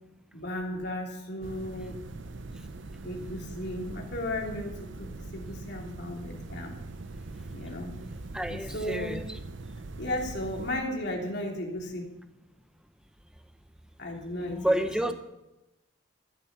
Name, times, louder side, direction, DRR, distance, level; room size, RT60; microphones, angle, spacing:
voice 1, 0.3-2.0 3.0-6.8 7.5-7.9 8.5-9.1 10.0-12.1 14.0-14.7, left 1 dB, 55° left, 0 dB, 3.1 m, -35 dB
sound 1, 1.4-10.8, right 2 dB, 65° right, 0.8 m, -42 dB
voice 2, 8.3-9.4 14.5-15.1, right 1 dB, 5° right, 8 dB, 0.8 m, -29 dB
14.0 x 9.0 x 7.0 m, 0.96 s
head